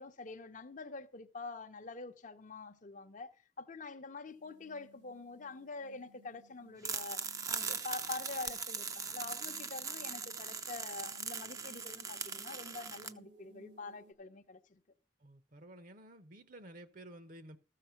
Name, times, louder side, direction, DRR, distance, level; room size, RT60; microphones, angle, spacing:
voice 1, 0.0-7.2 7.5-14.8, left 3 dB, 45° left, 0.7 m, -46 dB
sound 1, 4.3-14.1, right 3 dB, 80° right, 2.0 m, -63 dB
sound 2, 6.8-13.1, right 5 dB, 20° right, 0.5 m, -40 dB
voice 2, 15.2-17.6, right 1 dB, 50° right, 0.9 m, -52 dB
14.0 x 6.7 x 5.7 m
head